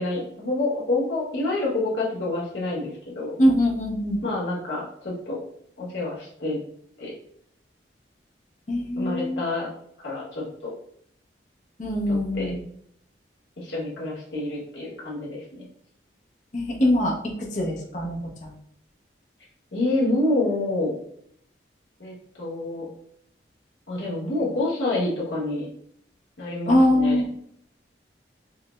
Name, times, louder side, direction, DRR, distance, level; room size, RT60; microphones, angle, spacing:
voice 1, 0.0-3.3 4.2-5.4 5.8-6.6 7.0-7.1 9.0-9.7 10.0-10.7 12.1-12.5 13.6-15.7 19.7-21.0 22.0-22.9 23.9-25.7 26.4-27.2, left 2 dB, 80° left, -5 dB, 1.3 m, -28 dB
voice 2, 3.4-4.2 8.7-9.4 11.8-12.6 16.5-17.1 17.5-18.5 26.7-27.3, left 1 dB, 40° left, -1 dB, 0.6 m, -22 dB
4.5 x 2.1 x 2.3 m, 0.67 s
head